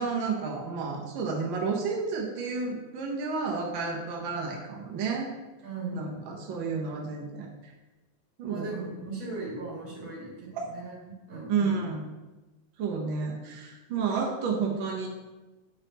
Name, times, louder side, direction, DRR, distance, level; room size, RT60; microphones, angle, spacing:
voice 1, 0.0-5.3 5.9-7.7 8.4-8.7 10.5-10.6 11.5-12.0 12.8-15.1, right 5 dB, 90° right, -1 dB, 1.1 m, -31 dB
voice 2, 5.6-6.2 8.4-10.9 11.3-11.8, right 3 dB, 45° right, -5 dB, 2.6 m, -38 dB
8.6 x 5.3 x 2.9 m, 1.1 s
omnidirectional pair, 3.5 m